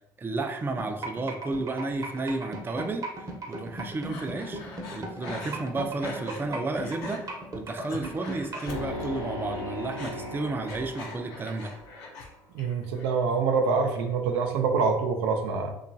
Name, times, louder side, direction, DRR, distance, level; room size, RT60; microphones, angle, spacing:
voice 1, 0.2-3.0 3.5-4.6 4.9-7.2 7.5-11.7, right 3 dB, 20° right, 5 dB, 0.4 m, -32 dB
sound 1, 0.8-8.7, right 2 dB, 40° right, 0.7 m, -36 dB
Breathing, 4.1-6.5 6.8-7.2 7.7-9.2 9.5-12.3 12.6-13.2, left 3 dB, 85° left, 0.5 m, -43 dB
sound 2, 8.7-12.1, left 1 dB, 50° left, 1.0 m, -37 dB
voice 2, 12.5-15.7, right 5 dB, 85° right, 4 dB, 0.4 m, -25 dB
2.9 x 2.3 x 2.6 m, 0.83 s
supercardioid pair, 75°, 9 cm